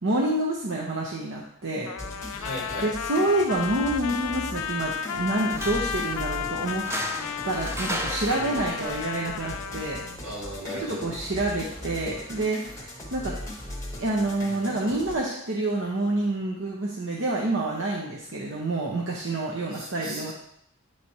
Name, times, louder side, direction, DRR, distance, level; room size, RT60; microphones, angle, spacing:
voice 1, 0.0-1.9 2.2-2.4 2.8-6.9 7.4-10.0 10.7-13.3 14.0-20.3, right 2 dB, 60° right, -2 dB, 0.8 m, -28 dB
Trumpet, 1.9-10.2, left 8 dB, 80° left, 0.3 m, -33 dB
sound 1, 2.0-15.2, left 1 dB, 15° left, 0.9 m, -39 dB
voice 2, 2.3-2.9 8.3-8.7 10.2-11.1 19.7-20.3, equal, 85° right, -5 dB, 2.7 m, -37 dB
sound 2, 5.4-12.4, right 1 dB, 10° right, 0.3 m, -38 dB
8.7 x 3.1 x 4.1 m, 0.73 s
head